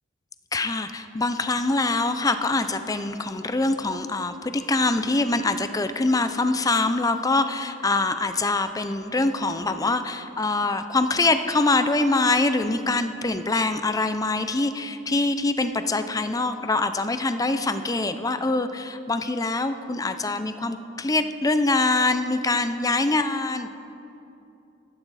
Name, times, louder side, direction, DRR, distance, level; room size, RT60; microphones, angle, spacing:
voice 1, 0.5-23.7, left 2 dB, 20° left, 9 dB, 0.5 m, -24 dB
23.0 x 12.0 x 4.1 m, 2.8 s
head